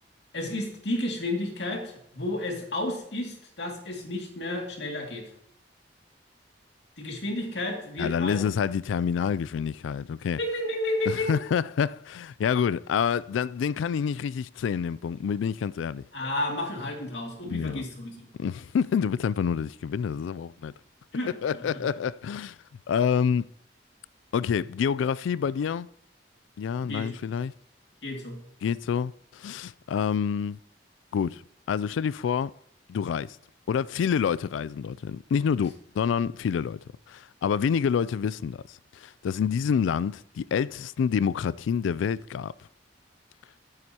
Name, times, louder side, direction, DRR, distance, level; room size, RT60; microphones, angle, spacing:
voice 1, 0.3-5.3 7.0-8.4 10.4-11.4 16.1-18.3 21.1-21.6 26.8-27.1 28.0-28.4, left 1 dB, 70° left, 2.3 m, -32 dB
voice 2, 8.0-10.4 11.1-16.0 17.5-17.8 18.4-20.7 21.4-22.6 22.9-23.5 24.3-25.9 26.6-27.5 28.6-30.6 31.1-31.4 31.7-32.5 32.9-33.4 33.7-36.8 37.1-42.5, left 7 dB, 90° left, 0.3 m, -27 dB
12.0 x 9.8 x 2.9 m
head